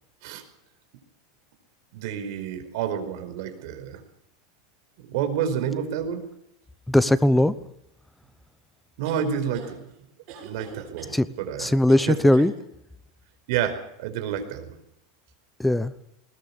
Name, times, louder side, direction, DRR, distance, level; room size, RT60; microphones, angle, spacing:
voice 1, 1.9-4.0 5.0-6.3 9.0-9.8 10.4-11.8 12.1-12.2 13.5-14.7, right 8 dB, 60° right, 8 dB, 4.9 m, -29 dB
voice 2, 6.9-7.5 11.1-11.3 11.6-12.5 15.6-15.9, left 1 dB, 5° left, 14 dB, 0.9 m, -19 dB
sound 1, 9.0-9.7 10.3-11.1 11.9-12.5, right 6 dB, 40° right, 7.0 m, -42 dB
20.5 x 20.0 x 7.2 m, 0.78 s
supercardioid pair, 160°, 2 cm